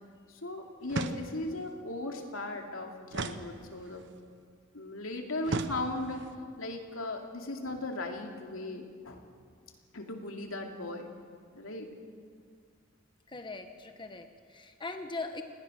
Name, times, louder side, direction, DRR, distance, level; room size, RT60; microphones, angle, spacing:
voice 1, 0.3-4.1 4.7-6.3 6.6-9.2 9.9-11.1 11.5-11.9, left 2 dB, 85° left, 3 dB, 2.7 m, -37 dB
sound 1, 0.9-1.6 3.1-4.1 5.4-6.3, right 2 dB, 60° right, 1.0 m, -36 dB
voice 2, 13.3-15.4, left 3 dB, 25° left, 6 dB, 1.1 m, -40 dB
28.5 x 19.5 x 6.4 m, 2.1 s
head